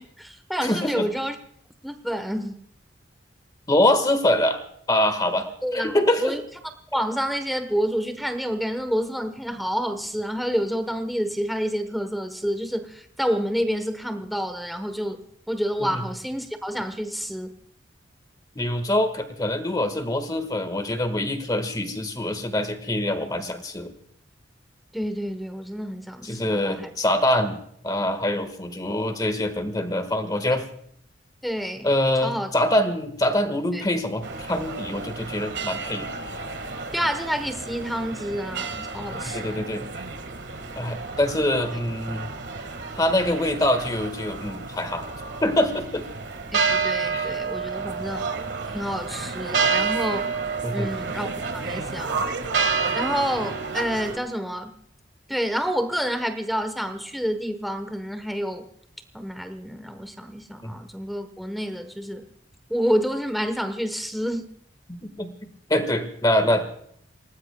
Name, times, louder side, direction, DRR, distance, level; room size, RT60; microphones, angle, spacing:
voice 1, 0.0-1.4 1.8-2.6 5.6-6.4 6.9-15.2 15.5-17.5 24.9-26.9 31.4-31.9 32.2-32.5 33.7-33.8 36.9-39.7 41.7-41.8 46.5-48.3 48.7-50.4 50.7-52.2 52.9-54.7 55.3-58.7 59.1-62.2 62.7-64.5, equal, ahead, 7 dB, 1.0 m, -28 dB
voice 2, 0.6-1.1 3.7-4.6 4.9-5.5 5.7-6.3 15.9-16.0 18.5-23.9 26.2-30.6 31.8-36.1 39.3-39.8 40.8-42.3 43.0-45.0 45.4-46.0 47.1-47.3 50.6-50.9 60.6-60.7 64.9-66.7, left 1 dB, 20° left, 8 dB, 1.6 m, -24 dB
sound 1, 34.2-54.2, right 5 dB, 65° right, 1.6 m, -30 dB
28.0 x 18.5 x 2.3 m, 0.67 s
head